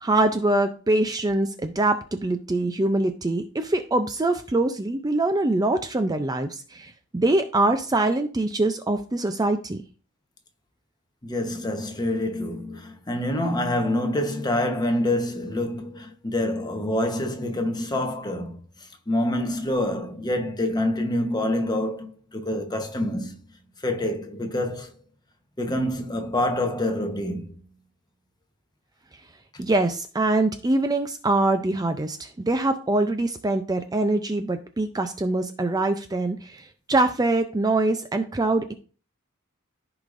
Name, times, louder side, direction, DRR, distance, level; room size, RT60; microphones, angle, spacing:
voice 1, 0.0-9.8 29.6-38.7, right 2 dB, 20° right, 0.5 m, -24 dB
voice 2, 11.2-23.4 23.8-24.9 25.6-27.6, left 1 dB, 20° left, 1.0 m, -26 dB
14.0 x 4.9 x 2.6 m
head